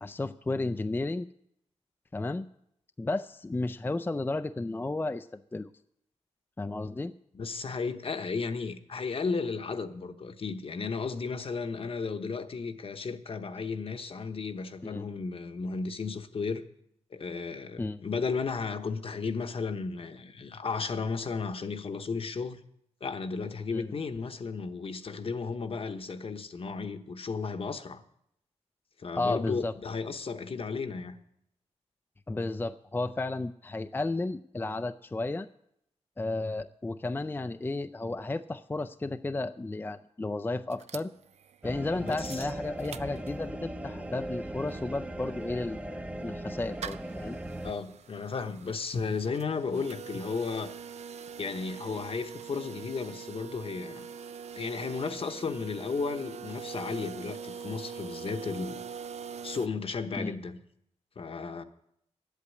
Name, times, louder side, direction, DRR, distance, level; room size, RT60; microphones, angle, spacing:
voice 1, 0.0-1.3 2.1-2.4 3.0-5.7 6.6-7.1 14.8-15.1 17.8-18.0 23.7-23.9 29.2-29.7 32.3-35.5 36.2-41.1 41.6-47.4 60.2-60.4, left 2 dB, 15° left, 0.4 m, -33 dB
voice 2, 7.3-16.6 17.1-22.6 23.0-28.0 29.0-31.2 41.9-42.5 47.6-50.7 51.4-54.1 54.6-58.8 59.4-60.6 61.2-61.6, left 4 dB, 55° left, 1.0 m, -34 dB
sound 1, 40.7-43.7 44.1-44.2 44.4-59.7, right 7 dB, 70° right, 0.5 m, -43 dB
sound 2, 41.6-47.7, right 1 dB, 10° right, 0.7 m, -38 dB
11.0 x 8.3 x 8.3 m
cardioid pair, 75°, 12 cm